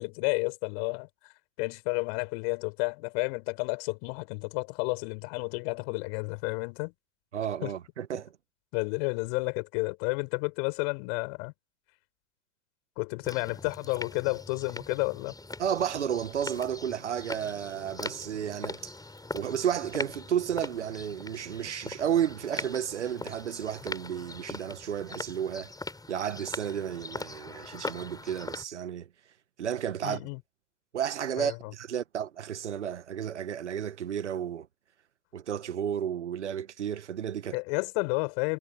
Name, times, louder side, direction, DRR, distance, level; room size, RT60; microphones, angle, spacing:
voice 1, 0.0-6.9 7.6-7.7 8.7-11.5 13.0-15.3 30.0-30.4 31.4-31.5 37.5-38.6, left 35 dB, 60° left, 6.7 m, -31 dB
voice 2, 7.3-8.4 15.6-18.9 19.3-25.7 26.1-29.1 29.6-30.2 30.9-34.7 35.3-37.6, right 9 dB, 85° right, 1.5 m, -32 dB
sound 1, 13.2-28.6, left 2 dB, 10° left, 5.2 m, -41 dB
hypercardioid pair, 75°, 34 cm